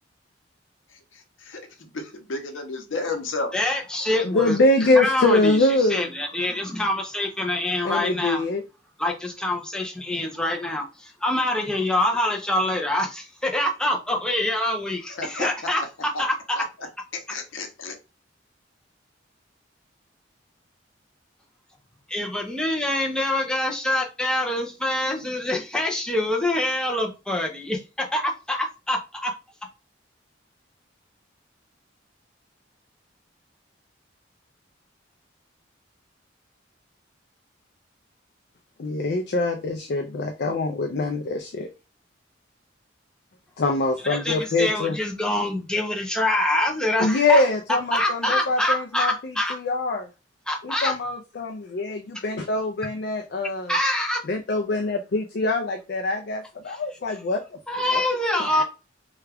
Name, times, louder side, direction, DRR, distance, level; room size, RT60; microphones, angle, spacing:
voice 1, 2.3-3.5 15.2-15.5 16.1-16.2 16.6-16.7 17.3-18.0, left 3 dB, 90° left, 5 dB, 0.8 m, -31 dB
voice 2, 3.5-4.6 4.9-8.4 9.0-16.7 17.3-17.4 22.1-29.3 44.0-47.4 47.9-49.6 50.5-50.9 53.7-54.2 56.7-56.8 57.7-58.6, left 1 dB, 5° left, 0 dB, 0.5 m, -25 dB
voice 3, 4.2-6.1 7.8-8.6 38.8-41.7 43.6-45.0 47.0-50.1 50.6-53.7 54.3-57.4 57.9-58.0 58.3-58.6, left 2 dB, 55° left, 4 dB, 0.4 m, -24 dB
3.3 x 2.3 x 3.3 m, 0.29 s
head